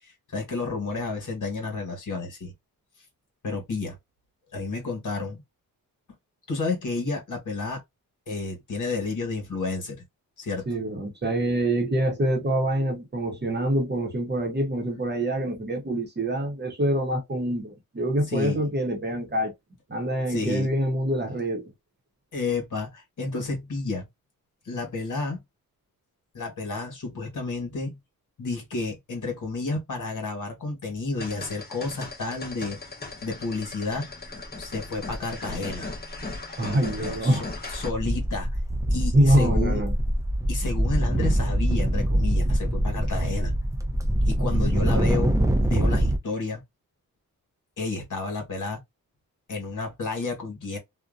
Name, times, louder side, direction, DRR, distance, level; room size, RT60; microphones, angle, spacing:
voice 1, 0.3-2.5 3.4-4.0 4.5-5.4 6.5-7.8 8.3-10.0 10.4-10.7 18.3-18.7 20.3-20.7 22.3-24.1 24.6-25.4 26.3-28.0 28.4-32.8 33.2-34.1 34.6-35.9 37.2-37.4 37.7-38.5 38.9-39.8 40.5-43.5 44.3-46.6 47.8-48.8 49.5-50.8, left 3 dB, 60° left, 1.3 m, -31 dB
voice 2, 10.7-19.5 19.9-21.6 36.6-37.4 39.1-39.9, right 1 dB, 30° right, 0.9 m, -25 dB
sound 1, 31.2-37.9, left 3 dB, 25° left, 0.9 m, -37 dB
sound 2, 37.2-37.4 37.7-46.2, right 1 dB, 10° right, 0.6 m, -24 dB
2.6 x 2.1 x 2.4 m
cardioid pair, 70°, 35 cm